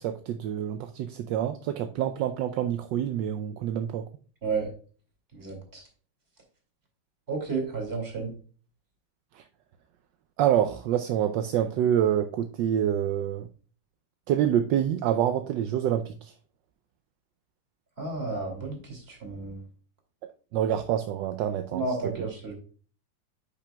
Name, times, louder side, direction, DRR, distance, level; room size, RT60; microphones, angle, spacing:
voice 1, 0.0-4.0 10.4-13.5 14.3-16.1 20.5-22.3, right 10 dB, 75° right, 1.2 m, -27 dB
voice 2, 5.3-5.8 7.3-8.3 18.0-19.6 21.7-22.5, right 4 dB, 30° right, 2.6 m, -32 dB
10.0 x 5.9 x 2.3 m
omnidirectional pair, 2.0 m